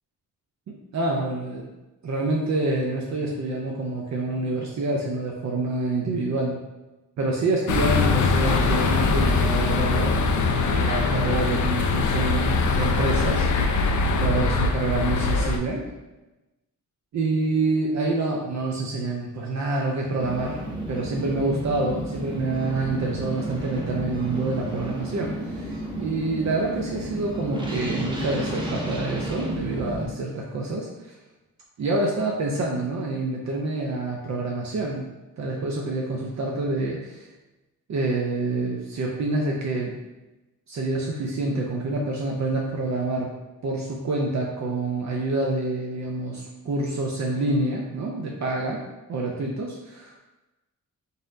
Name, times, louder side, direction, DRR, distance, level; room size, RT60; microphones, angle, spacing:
voice 1, 0.7-1.7 2.0-6.6 7.2-10.2 10.7-13.5 14.2-15.8 17.1-31.2 31.8-35.1 35.4-37.3 37.9-39.9 40.7-43.3 43.6-48.8 49.1-50.2, right 2 dB, 55° right, -1 dB, 0.6 m, -27 dB
sound 1, 7.7-15.6, left 4 dB, 60° left, 0.5 m, -22 dB
sound 2, 20.2-30.0, right 1 dB, 15° right, 0.7 m, -32 dB
4.1 x 3.7 x 2.6 m, 1.0 s
wide cardioid pair, 120°, 33 cm